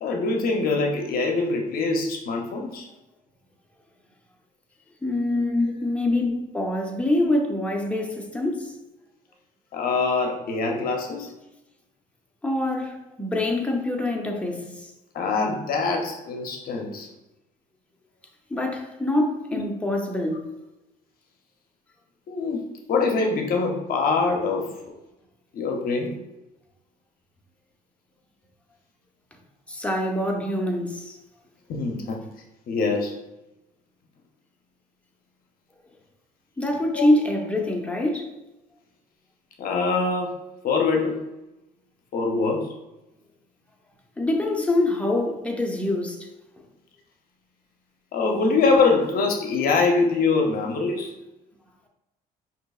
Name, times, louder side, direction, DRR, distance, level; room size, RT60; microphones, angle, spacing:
voice 1, 0.0-2.9 5.3-5.7 6.0-6.3 7.2-7.3 9.7-11.3 12.8-12.9 15.1-17.1 19.5-19.6 22.3-24.7 25.5-26.2 31.7-32.2 32.7-33.1 36.9-37.1 39.6-40.4 40.6-41.2 42.1-42.7 48.1-51.1, left 4 dB, 60° left, 0.6 m, -24 dB
voice 2, 5.0-8.7 12.4-14.7 18.5-20.5 29.7-31.2 36.6-38.3 44.2-46.3, left 1 dB, 5° left, 0.6 m, -25 dB
5.1 x 2.8 x 2.3 m
cardioid pair, 110°, 17 cm